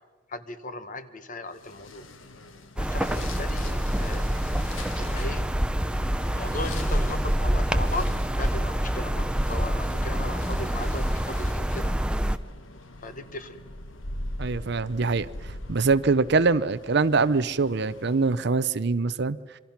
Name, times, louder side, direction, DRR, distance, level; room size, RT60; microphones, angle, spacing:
voice 1, 0.3-2.1 2.8-4.3 5.0-5.5 6.0-11.9 13.0-13.6, left 2 dB, 40° left, 10 dB, 1.4 m, -37 dB
sound 1, 1.5-18.6, left 2 dB, 80° left, 1.5 m, -43 dB
sound 2, 2.8-12.4, equal, 5° right, 0.6 m, -26 dB
voice 2, 14.4-15.3 15.7-19.4, right 4 dB, 55° right, 15 dB, 0.6 m, -23 dB
27.0 x 24.0 x 5.9 m, 1.5 s
head